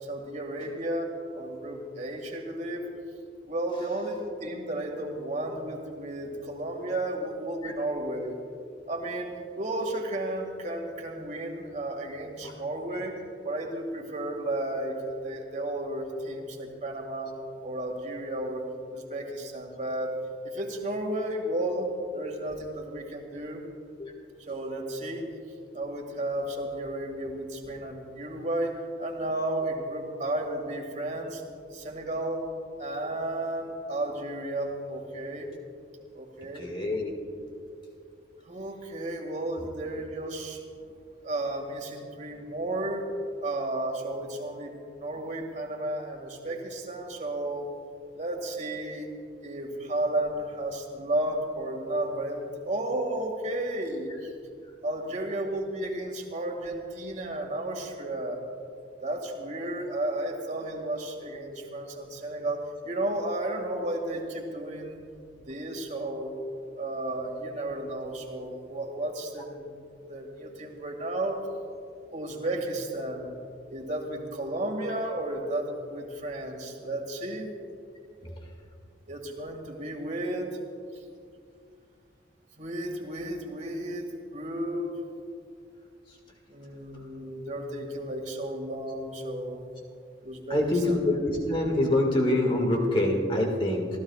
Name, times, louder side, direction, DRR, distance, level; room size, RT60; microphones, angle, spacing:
voice 1, 0.0-2.8 3.5-8.4 8.9-13.2 13.4-17.3 17.6-18.6 18.9-20.1 20.4-23.6 24.5-25.2 25.7-31.4 31.7-32.5 32.8-35.5 36.1-36.7 38.4-40.6 41.2-43.1 43.4-47.7 48.1-49.1 49.4-54.3 54.8-58.4 59.0-65.0 65.5-66.3 66.8-69.7 70.1-71.4 72.1-73.3 73.7-77.5 79.1-80.6 82.6-84.1 84.3-85.0 86.5-89.7 90.2-91.0, right 1 dB, 45° right, 2 dB, 2.1 m, -33 dB
voice 2, 36.5-37.1 78.2-78.3 90.5-93.9, left 1 dB, 30° left, 1 dB, 2.1 m, -25 dB
28.5 x 15.0 x 2.4 m, 2.4 s
head